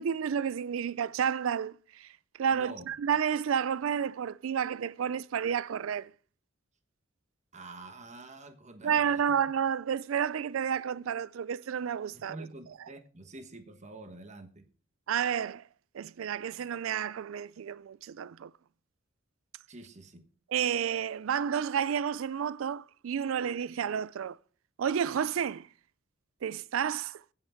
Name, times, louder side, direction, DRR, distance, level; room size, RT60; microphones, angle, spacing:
voice 1, 0.0-2.1 2.4-6.1 8.8-12.4 12.8-12.9 15.1-15.6 15.9-18.5 20.5-24.4 24.8-25.7 26.4-27.2, right 8 dB, 80° right, 0.4 m, -31 dB
voice 2, 2.5-2.9 7.5-9.2 12.1-14.6 19.7-20.3, right 2 dB, 35° right, 1.2 m, -47 dB
16.5 x 5.8 x 4.5 m
head